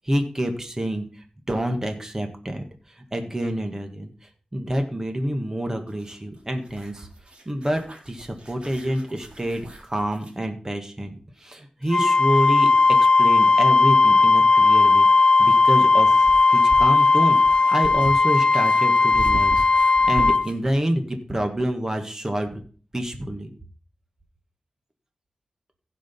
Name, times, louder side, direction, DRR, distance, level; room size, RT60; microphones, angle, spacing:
voice 1, 0.0-1.1 1.5-2.7 3.0-4.1 4.5-7.1 7.5-17.4 17.7-22.6 22.9-23.5, equal, 25° right, 5 dB, 1.9 m, -28 dB
sound 1, 5.9-10.4 12.8-12.9 14.8-20.7, right 3 dB, 55° right, 3.3 m, -38 dB
Wind instrument woodwind instrument, 11.9-20.5, left 3 dB, 45° left, 0.5 m, -17 dB
15.5 x 5.2 x 5.5 m, 0.42 s
wide cardioid pair, 85°, 2 cm